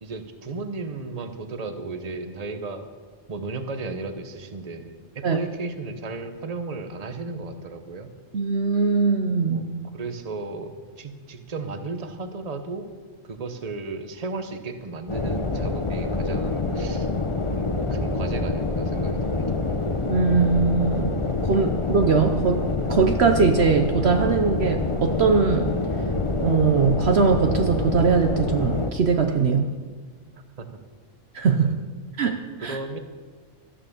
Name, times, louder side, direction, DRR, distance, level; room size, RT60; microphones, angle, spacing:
voice 1, 0.0-2.9 3.3-8.1 9.5-12.9 13.2-17.1 17.5-19.4 30.6-30.8 31.6-31.7 32.6-33.0, right 3 dB, 30° right, 7 dB, 1.0 m, -34 dB
voice 2, 8.3-9.7 20.1-25.7 26.4-29.7 31.3-31.8 32.2-32.8, right 5 dB, 55° right, 5 dB, 1.0 m, -21 dB
sound 1, 15.1-28.9, left 3 dB, 25° left, 0.9 m, -26 dB
13.5 x 9.9 x 7.2 m, 1.5 s
omnidirectional pair, 1.3 m